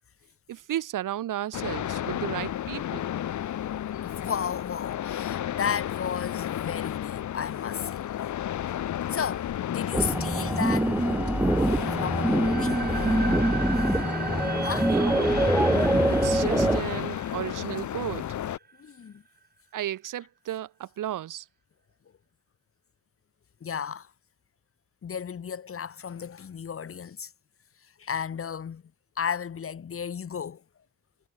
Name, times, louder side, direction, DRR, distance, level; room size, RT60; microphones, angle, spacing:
voice 1, 0.5-3.0 14.8-15.4 16.1-18.3 19.7-21.4, right 12 dB, 70° right, 1.6 m, -34 dB
sound 1, 1.5-18.6, left 11 dB, 60° left, 1.2 m, -32 dB
voice 2, 4.0-8.0 9.1-10.9 11.6-13.1 13.9-14.0 14.6-14.9 15.6-15.7 18.8-19.2 23.6-24.1 25.0-27.3 28.0-28.8 29.2-30.6, left 7 dB, 40° left, 1.9 m, -34 dB
sound 2, 9.9-16.8, right 1 dB, 5° right, 0.5 m, -24 dB
sound 3, 12.2-19.0, right 5 dB, 30° right, 1.6 m, -39 dB
cardioid pair, 110°, 33 cm